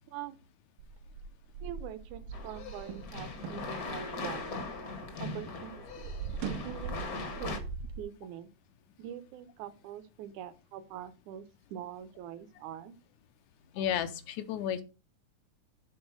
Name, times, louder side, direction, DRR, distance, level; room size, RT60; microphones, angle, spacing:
sound 1, 0.8-5.2 5.5-8.0, right 5 dB, 90° right, 2.7 m, -41 dB
voice 1, 1.6-4.7 5.2-6.1 6.4-7.6 8.0-8.5 9.0-12.9, right 10 dB, 75° right, 13 dB, 2.1 m, -44 dB
sound 2, 2.3-7.6, left 3 dB, 50° left, 1.0 m, -40 dB
voice 2, 13.7-14.8, left 9 dB, 75° left, 10 dB, 1.9 m, -32 dB
9.8 x 3.9 x 6.2 m, 0.31 s
omnidirectional pair, 3.7 m